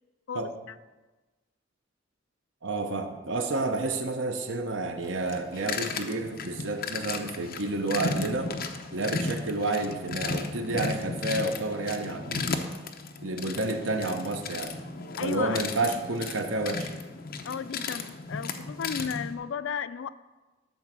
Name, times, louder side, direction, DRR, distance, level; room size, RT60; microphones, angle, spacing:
voice 1, 2.6-8.6 8.9-12.7 13.2-14.7 15.2-16.9, right 2 dB, 70° right, 6 dB, 1.0 m, -30 dB
sound 1, 5.0-19.3, left 4 dB, 50° left, 0.7 m, -35 dB
voice 2, 15.2-15.6 17.4-20.1, left 6 dB, 75° left, 15 dB, 0.4 m, -34 dB
12.0 x 4.0 x 7.4 m, 1.2 s
head